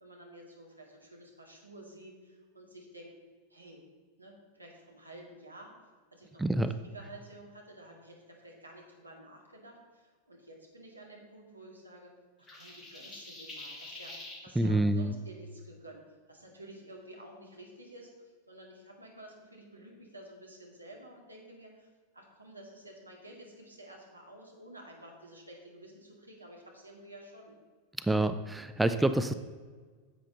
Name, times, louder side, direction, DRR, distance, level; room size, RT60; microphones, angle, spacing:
voice 1, 0.0-3.1 3.5-3.8 4.2-5.7 6.1-12.1 12.4-14.1 14.4-18.1 18.5-27.5, right 1 dB, 85° right, -1 dB, 2.1 m, -51 dB
voice 2, 6.4-6.7 14.6-15.1 28.1-29.3, right 1 dB, 5° right, 10 dB, 0.4 m, -27 dB
sound 1, 12.5-14.4, left 2 dB, 20° left, 2.3 m, -45 dB
10.0 x 8.1 x 4.0 m, 1.5 s
figure-of-eight pair, 90°, 0 cm